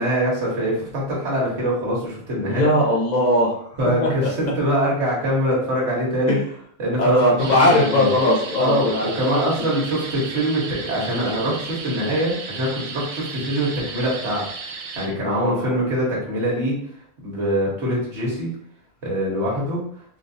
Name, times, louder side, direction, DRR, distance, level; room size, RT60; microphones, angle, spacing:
voice 1, 0.0-2.7 3.8-6.4 6.8-7.2 7.6-8.1 8.6-14.4 14.7-16.8 17.2-18.5 19.0-19.8, equal, 55° right, -5 dB, 1.4 m, -23 dB
voice 2, 2.4-3.7 4.0-4.3 6.3-6.4 7.0-9.4 15.2-15.8, left 1 dB, 40° left, -3 dB, 0.7 m, -20 dB
sound 1, 7.4-15.1, right 4 dB, 75° right, 1.0 m, -34 dB
3.5 x 2.6 x 2.6 m, 0.64 s
omnidirectional pair, 1.5 m